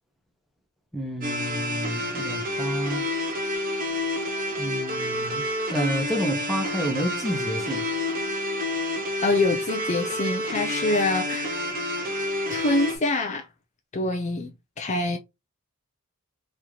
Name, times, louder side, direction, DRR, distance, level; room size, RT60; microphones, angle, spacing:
voice 1, 0.9-3.0 4.6-5.4 5.7-7.8, equal, ahead, 0.9 m, -29 dB
sound 1, 1.2-13.0, left 1 dB, 40° right, 1.0 m, -29 dB
voice 2, 9.2-11.6 12.5-13.5 13.9-15.2, left 2 dB, 35° left, 0.5 m, -25 dB
3.1 x 2.9 x 3.7 m
head